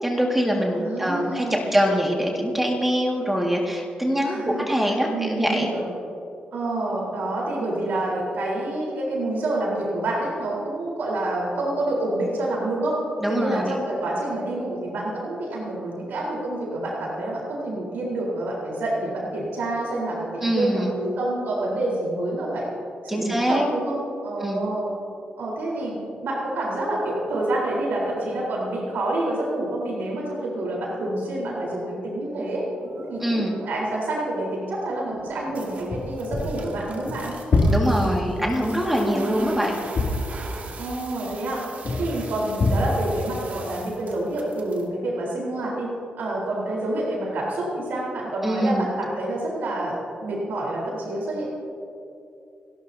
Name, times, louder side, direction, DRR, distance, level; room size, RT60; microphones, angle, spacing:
voice 1, 0.0-4.4 4.7-5.7 13.2-13.8 20.4-20.9 23.1-23.7 24.4-24.7 33.2-33.5 37.7-39.8 48.4-48.9, equal, 5° right, -1 dB, 1.9 m, -23 dB
voice 2, 0.7-1.7 4.2-4.7 5.1-5.9 6.5-13.0 13.3-22.7 23.0-24.9 25.4-32.7 33.1-37.3 39.1-39.4 40.8-41.6 41.9-51.5, right 1 dB, 85° right, -4 dB, 4.0 m, -28 dB
sound 1, 32.8-34.1 34.5-44.9, right 3 dB, 60° right, 2.3 m, -41 dB
sound 2, 35.7-38.6 39.0-40.8 41.8-42.3 42.6-43.2, left 2 dB, 55° left, 2.5 m, -25 dB
29.5 x 12.0 x 2.8 m, 2.7 s
cardioid pair, 110°, 3 cm